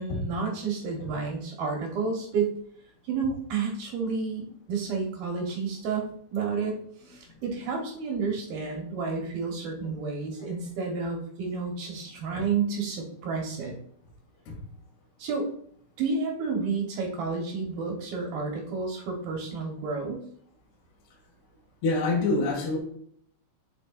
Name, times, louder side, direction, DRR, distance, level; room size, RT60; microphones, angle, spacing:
voice 1, 0.0-2.5 3.0-6.8 7.1-13.7 15.2-15.5 16.0-20.2, right 5 dB, 70° right, 0 dB, 2.4 m, -30 dB
voice 2, 21.8-22.8, left 3 dB, 55° left, -4 dB, 4.0 m, -27 dB
12.5 x 5.0 x 2.5 m, 0.64 s
omnidirectional pair, 5.9 m